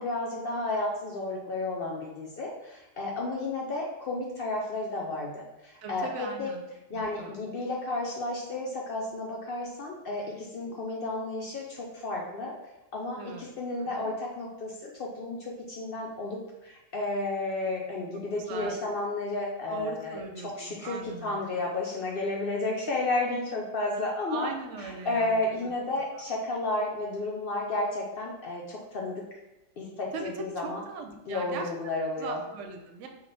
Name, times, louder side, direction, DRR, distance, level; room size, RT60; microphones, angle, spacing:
voice 1, 0.0-6.5 6.9-12.5 12.9-24.5 24.8-29.2 29.8-30.8 31.3-32.4, left 2 dB, 60° left, -2 dB, 0.6 m, -32 dB
voice 2, 5.8-6.6 6.9-7.3 13.2-13.4 13.9-14.1 18.4-18.8 19.7-21.4 24.3-25.7 30.1-31.7 32.2-33.1, right 4 dB, 70° right, 4 dB, 0.9 m, -39 dB
3.4 x 2.4 x 3.8 m, 0.99 s
omnidirectional pair, 1.3 m